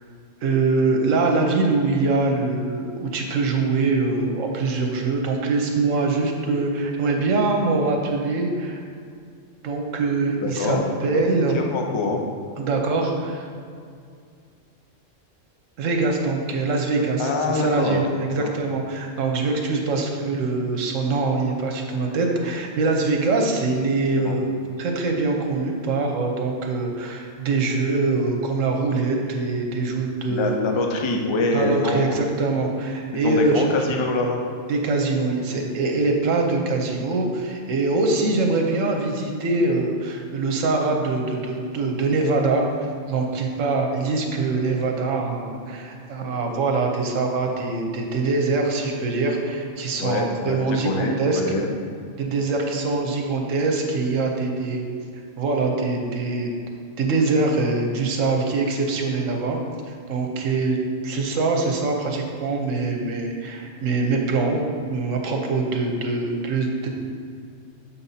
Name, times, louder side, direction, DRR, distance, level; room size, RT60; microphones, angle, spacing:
voice 1, 0.4-8.8 9.6-11.6 12.6-13.5 15.8-24.5 24.8-30.6 31.5-33.7 34.7-51.4 52.2-54.9 55.4-56.5 57.0-59.6 59.9-60.8 61.0-64.6 64.9-66.9, right 3 dB, 80° right, 2 dB, 1.2 m, -23 dB
voice 2, 10.4-10.8 11.5-12.2 17.2-18.0 18.4-18.5 23.9-24.0 24.2-24.4 30.3-32.2 33.1-34.4 50.0-51.7, left 2 dB, 40° left, 2 dB, 0.4 m, -25 dB
7.2 x 5.6 x 2.8 m, 2.2 s
omnidirectional pair, 1.3 m